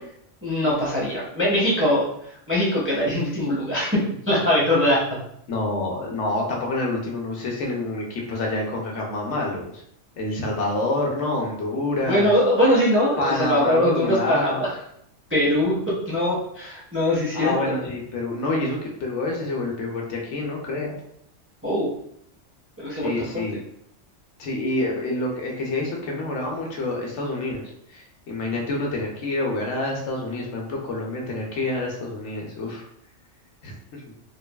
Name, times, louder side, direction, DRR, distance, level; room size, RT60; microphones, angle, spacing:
voice 1, 0.4-2.0 2.5-5.0 12.0-14.7 15.3-17.7 21.6-21.9 22.8-23.4, left 1 dB, 15° right, -6 dB, 0.5 m, -22 dB
voice 2, 5.5-9.8 10.2-12.3 13.2-14.6 17.3-20.9 22.9-23.6 24.4-27.6 27.9-32.9 33.6-34.0, left 2 dB, 75° left, -1 dB, 0.9 m, -27 dB
3.1 x 2.2 x 2.2 m, 0.74 s
omnidirectional pair, 1.2 m